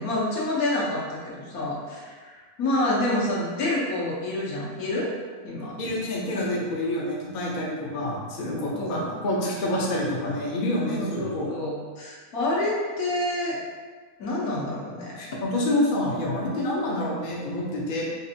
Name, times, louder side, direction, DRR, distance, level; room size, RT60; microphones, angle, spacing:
voice 1, 0.0-5.1 5.4-5.8 8.8-9.0 10.9-13.6 14.2-15.2, left 1 dB, 75° left, -6 dB, 1.4 m, -28 dB
voice 2, 5.8-11.5 15.2-18.0, left 1 dB, 45° left, -4 dB, 0.7 m, -27 dB
5.1 x 2.5 x 2.7 m, 1.5 s
omnidirectional pair, 1.6 m